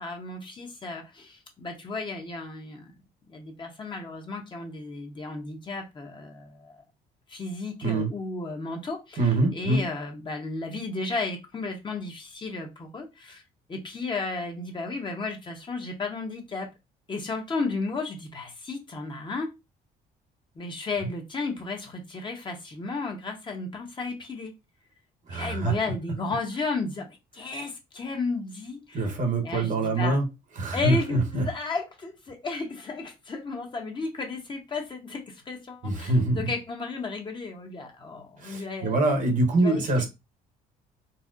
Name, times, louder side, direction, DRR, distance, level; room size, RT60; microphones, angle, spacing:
voice 1, 0.0-2.9 3.3-6.8 7.3-13.4 13.7-16.7 17.1-19.5 20.6-24.5 25.3-29.1 29.4-30.2 30.7-39.3 39.6-40.1, left 3 dB, 30° left, 0.8 m, -34 dB
voice 2, 9.2-9.8 25.3-25.7 28.9-30.2 30.6-31.4 35.8-36.4 38.4-40.1, right 2 dB, 50° right, 0.9 m, -24 dB
4.1 x 2.1 x 2.4 m
cardioid pair, 110°, 17 cm